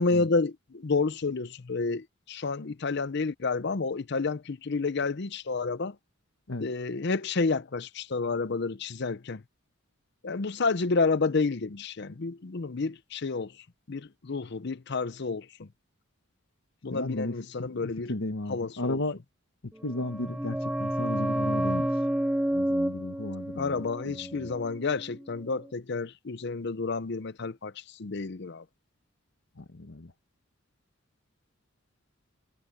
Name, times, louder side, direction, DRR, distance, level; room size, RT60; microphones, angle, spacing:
voice 1, 0.0-6.0 6.6-9.4 10.2-13.5 13.9-15.7 16.8-18.1 18.5-19.0 23.6-28.6, left 4 dB, 55° left, 0.7 m, -30 dB
voice 2, 16.9-19.2 19.6-22.0 22.5-23.7 24.0-24.5 29.6-30.1, left 2 dB, 75° left, 1.5 m, -35 dB
sound 1, 19.8-25.2 25.5-25.6, right 1 dB, 5° right, 0.4 m, -30 dB
head